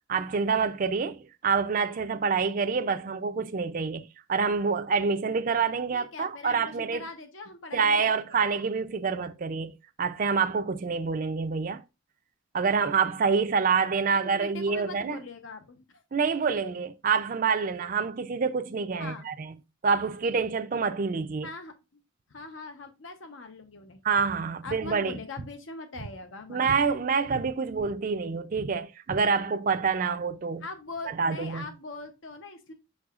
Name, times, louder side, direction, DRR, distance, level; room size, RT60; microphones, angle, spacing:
voice 1, 0.1-7.0 7.7-11.8 12.5-15.2 16.1-19.5 19.8-21.5 24.0-25.2 26.5-30.6 31.2-31.7, right 5 dB, 40° right, 0.4 m, -27 dB
voice 2, 5.9-8.4 14.2-16.0 19.0-19.3 21.4-21.7 22.3-24.0 24.6-26.7 30.6-32.7, left 3 dB, 70° left, 0.8 m, -42 dB
6.3 x 6.2 x 2.4 m
head